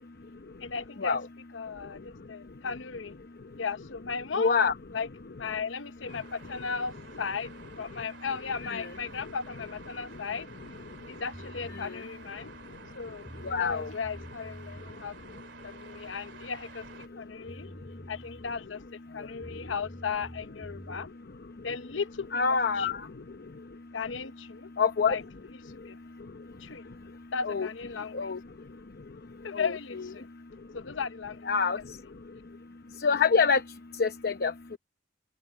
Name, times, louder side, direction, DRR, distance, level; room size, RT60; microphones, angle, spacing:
voice 1, 0.6-1.2 1.5-3.1 3.6-4.6 4.9-7.5 7.8-10.5 11.1-12.5 12.9-13.3 13.6-15.2 15.6-16.9 17.2-17.7 18.1-18.8 19.1-21.1 21.6-23.1 23.9-24.7 25.1-25.2 25.6-26.0 26.6-26.8 27.3-28.3 29.4-30.3 30.7-31.5, left 5 dB, 90° left, 0.8 m, -36 dB
voice 2, 4.4-4.7 8.7-8.9 11.8-11.9 13.4-13.9 22.3-23.0 24.8-25.2 27.4-27.7 28.1-28.4 29.5-29.7 31.5-31.8 33.0-33.6 34.0-34.8, left 5 dB, 55° left, 0.8 m, -25 dB
sound 1, 6.1-17.1, right 4 dB, 70° right, 2.8 m, -51 dB
sound 2, 11.3-11.9 12.9-13.0 13.2-14.9 17.1-17.2 17.5-18.7 19.4-21.1, equal, 10° left, 4.5 m, -47 dB
open air
head